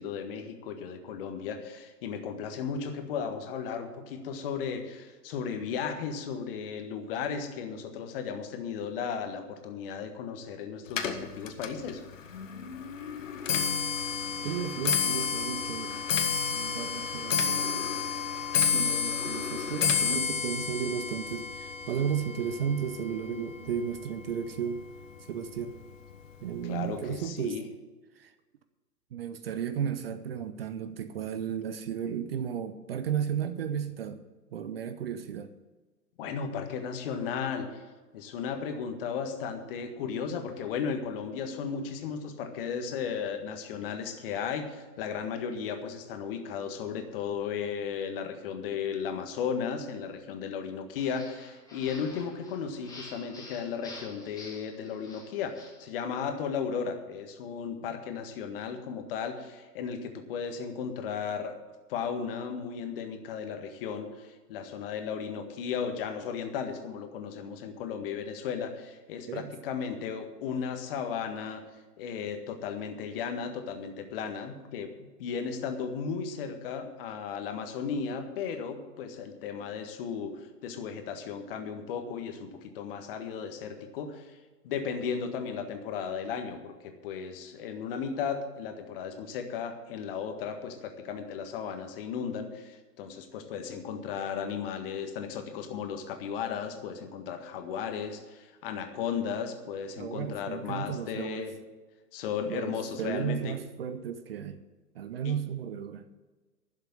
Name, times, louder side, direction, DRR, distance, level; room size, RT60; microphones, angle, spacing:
voice 1, 0.0-12.0 26.7-27.6 36.2-37.8 38.1-61.5 61.9-71.6 72.0-84.4 84.6-101.5 102.1-103.5 105.2-105.3, left 6 dB, 35° left, 6 dB, 1.7 m, -35 dB
Clock, 10.9-24.2 24.6-25.0 25.8-25.9 26.2-26.6 26.9-27.0, left 6 dB, 55° left, 1.6 m, -30 dB
voice 2, 14.4-15.9 16.5-17.9 18.7-24.9 25.3-25.8 26.4-27.6 28.2-28.3 29.1-34.2 34.5-35.5 69.3-69.5 100.0-101.5 102.5-104.6 104.9-106.1, right 8 dB, 40° right, 11 dB, 0.7 m, -34 dB
sound 1, 51.0-55.8, left 2 dB, 10° left, 2.5 m, -49 dB
11.5 x 7.4 x 9.3 m, 1.3 s
figure-of-eight pair, 110°, 47 cm